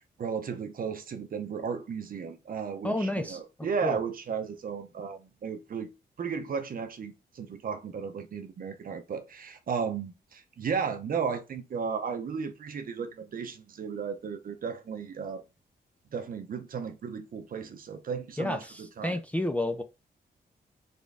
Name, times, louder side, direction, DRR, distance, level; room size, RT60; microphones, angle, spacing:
voice 1, 0.2-5.9 6.2-15.4 16.1-19.2, right 6 dB, 55° right, 0.8 m, -34 dB
voice 2, 2.8-3.4 3.8-4.0 18.4-19.8, left 1 dB, 10° left, 0.4 m, -30 dB
4.1 x 3.7 x 3.4 m
wide cardioid pair, 165°, 17 cm